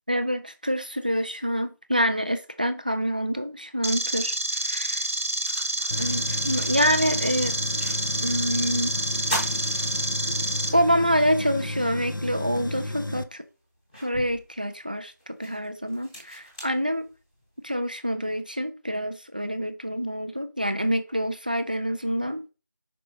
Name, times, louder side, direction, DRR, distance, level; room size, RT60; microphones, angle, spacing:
voice 1, 0.1-5.0 6.0-7.6 8.2-8.9 10.3-10.4 10.7-13.4 14.0-17.1 17.6-22.5, equal, 25° right, 0.5 m, -26 dB
sound 1, 3.8-10.7, right 1 dB, 40° right, 1.2 m, -28 dB
sound 2, 4.4-4.5 5.0-8.4 8.7-8.8 9.2-10.7 11.1-11.2 12.6-12.7 13.3-17.5, equal, 5° left, 1.0 m, -39 dB
Tools, 5.9-13.2, left 2 dB, 85° left, 0.7 m, -33 dB
5.5 x 4.9 x 4.1 m
figure-of-eight pair, 175°, 11 cm